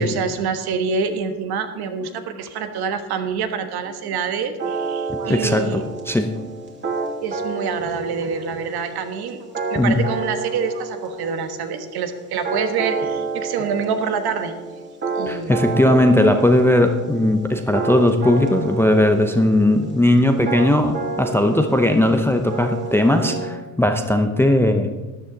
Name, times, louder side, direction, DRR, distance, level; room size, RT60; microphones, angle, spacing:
voice 1, 0.0-5.8 6.4-6.5 7.2-9.4 9.7-14.6 15.1-15.6, right 6 dB, 50° right, 8 dB, 1.4 m, -26 dB
sound 1, 4.6-23.5, right 4 dB, 25° right, 2.7 m, -30 dB
voice 2, 5.1-6.3 9.8-10.0 15.3-24.9, left 1 dB, 5° left, 6 dB, 0.7 m, -18 dB
13.5 x 9.9 x 3.9 m, 1.2 s
supercardioid pair, 90°, 48 cm